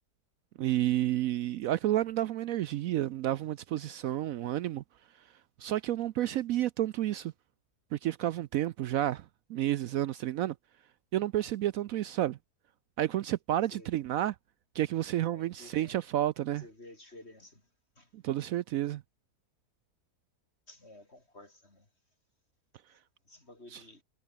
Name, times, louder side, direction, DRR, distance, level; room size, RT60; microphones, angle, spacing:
voice 1, 0.6-4.8 5.6-7.3 7.9-9.2 9.5-10.5 11.1-12.4 13.0-14.3 14.7-16.6 18.1-19.0 23.7-23.8, right 13 dB, 70° right, 0.9 m, -30 dB
voice 2, 15.3-16.0 16.6-17.7 18.0-18.1 20.7-21.9 22.9-23.0 23.3-24.0, left 2 dB, 40° left, 5.8 m, -53 dB
omnidirectional pair, 1.6 m